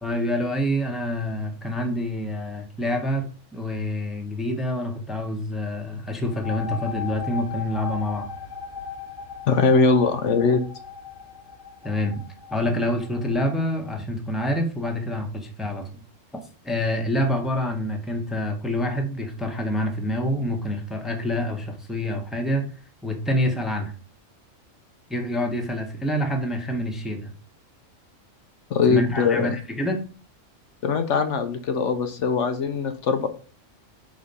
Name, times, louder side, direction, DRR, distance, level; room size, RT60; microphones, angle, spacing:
voice 1, 0.0-8.3 11.8-12.2 12.5-15.9 16.6-22.7 23.0-23.9 25.1-27.3 28.9-30.0, left 1 dB, ahead, 3 dB, 0.9 m, -27 dB
sound 1, 6.2-13.7, left 6 dB, 50° left, 0.7 m, -37 dB
voice 2, 9.5-10.6 28.7-29.5 30.8-33.3, left 4 dB, 70° left, 7 dB, 1.0 m, -21 dB
5.1 x 4.0 x 5.4 m, 0.38 s
omnidirectional pair, 1.3 m